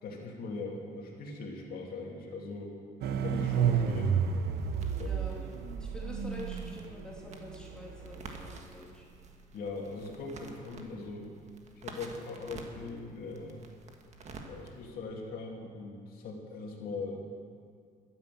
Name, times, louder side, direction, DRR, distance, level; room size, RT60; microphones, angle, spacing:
voice 1, 0.0-2.7 3.1-4.2 4.9-5.2 9.5-11.3 11.7-13.6 14.5-17.2, left 3 dB, 60° left, -1 dB, 2.8 m, -40 dB
sound 1, 3.0-8.6, right 7 dB, 75° right, 0.9 m, -31 dB
sound 2, 3.5-15.0, right 3 dB, 40° right, 1.7 m, -51 dB
voice 2, 5.0-5.5 5.8-9.1, left 2 dB, 5° left, -4 dB, 2.7 m, -46 dB
13.0 x 10.0 x 7.6 m, 2.1 s
cardioid pair, 110°, 17 cm